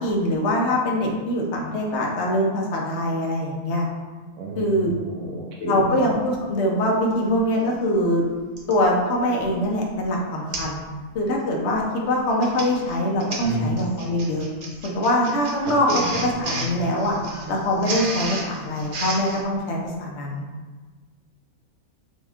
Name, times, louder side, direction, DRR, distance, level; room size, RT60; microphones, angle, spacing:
voice 1, 0.0-3.9 4.5-4.9 5.6-8.3 8.7-10.8 11.1-14.4 14.8-17.2 17.5-20.5, left 1 dB, 55° left, -1 dB, 1.0 m, -23 dB
voice 2, 4.4-6.0 13.4-13.8 15.6-16.1, right 2 dB, 70° right, -2 dB, 1.0 m, -31 dB
Printer, 7.4-7.5 8.6-8.8 9.4-9.6 9.9-10.0 10.5-10.8 11.1-11.4 12.2-19.4, right 2 dB, 45° right, 0.7 m, -32 dB
6.2 x 2.4 x 3.5 m, 1.4 s
omnidirectional pair, 1.6 m